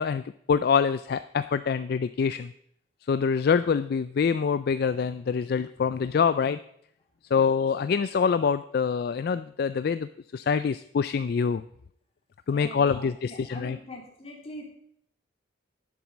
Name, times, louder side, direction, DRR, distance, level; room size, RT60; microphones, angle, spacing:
voice 1, 0.0-2.5 3.1-6.6 7.3-11.6 12.5-13.8, left 6 dB, 55° left, 13 dB, 0.3 m, -25 dB
voice 2, 12.5-14.6, left 1 dB, 30° left, -1 dB, 2.8 m, -43 dB
10.5 x 7.3 x 6.0 m, 0.69 s
head